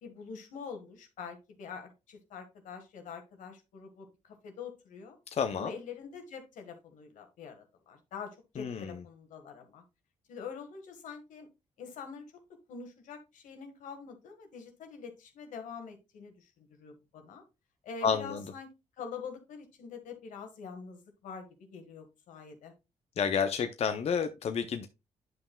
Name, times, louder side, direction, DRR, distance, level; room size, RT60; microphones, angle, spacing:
voice 1, 0.0-5.2 5.5-9.8 10.3-11.5 11.8-12.3 12.7-17.4 17.8-18.7 19.0-22.7, left 6 dB, 85° left, 5 dB, 1.5 m, -45 dB
voice 2, 5.3-5.7 8.6-9.0 18.0-18.4 23.2-24.9, left 6 dB, 55° left, 8 dB, 0.6 m, -30 dB
9.4 x 5.6 x 2.2 m, 0.26 s
cardioid pair, 80°, 13 cm